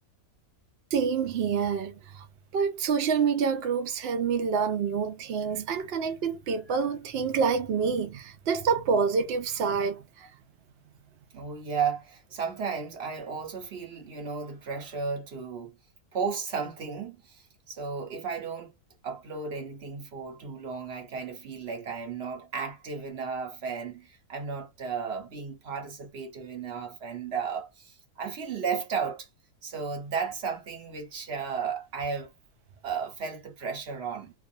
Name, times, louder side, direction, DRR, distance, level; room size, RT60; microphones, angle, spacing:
voice 1, 0.9-2.3 2.5-10.3, right 6 dB, 80° right, 0.5 m, -27 dB
voice 2, 11.3-15.8 16.1-18.7 19.0-29.3 29.6-32.3 32.8-34.3, right 6 dB, 45° right, 1.0 m, -34 dB
2.5 x 2.4 x 2.6 m
omnidirectional pair, 1.7 m